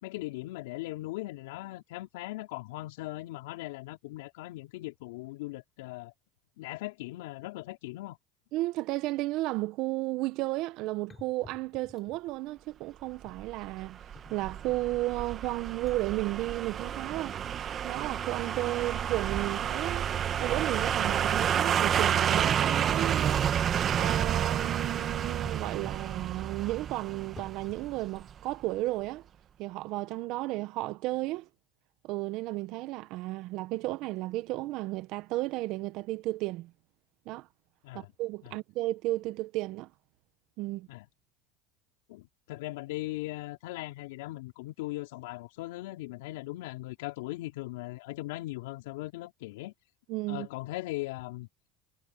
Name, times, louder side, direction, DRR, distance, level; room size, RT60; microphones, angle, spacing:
voice 1, 0.0-6.1 6.6-8.2 37.8-38.1 38.4-38.5 40.9-41.1 42.1-49.7 50.3-51.5, left 19 dB, 80° left, 4.5 m, -39 dB
voice 2, 8.5-14.0 14.3-17.4 17.8-20.1 20.4-23.5 24.0-29.2 29.6-31.5 32.0-36.7 37.2-37.5 37.9-39.9 40.6-40.9 50.1-50.5, right 18 dB, 65° right, 1.2 m, -33 dB
sound 1, 10.6-10.7 11.1-12.3 13.2-13.4 14.1-14.8 15.4-15.5 15.9-16.0 16.3-16.6 17.1-18.9 19.2-20.0 20.8-21.3 21.9-22.7 23.7-24.5 25.4-26.0 26.3-28.1, left 4 dB, 20° left, 8.0 m, -53 dB
sound 2, 13.4-28.3 28.6-28.7, right 9 dB, 40° right, 1.4 m, -30 dB
supercardioid pair, 95°, 0 cm